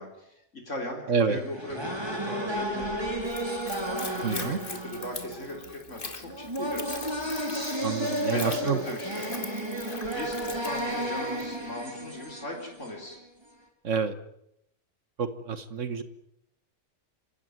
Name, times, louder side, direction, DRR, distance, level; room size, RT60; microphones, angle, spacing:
voice 1, 0.0-3.1 3.8-6.9 8.2-9.3 10.0-13.2, left 1 dB, 75° left, 1 dB, 4.4 m, -38 dB
sound 1, 1.3-13.2, right 1 dB, 20° right, 4.4 m, -33 dB
Splash splatter / Trickle dribble, 3.2-11.6, left 3 dB, 45° left, 2.5 m, -42 dB
voice 2, 4.2-4.6 7.8-8.8 13.8-14.1 15.2-16.0, right 5 dB, 75° right, 12 dB, 1.7 m, -28 dB
27.0 x 17.0 x 9.6 m, 0.79 s
omnidirectional pair, 1.3 m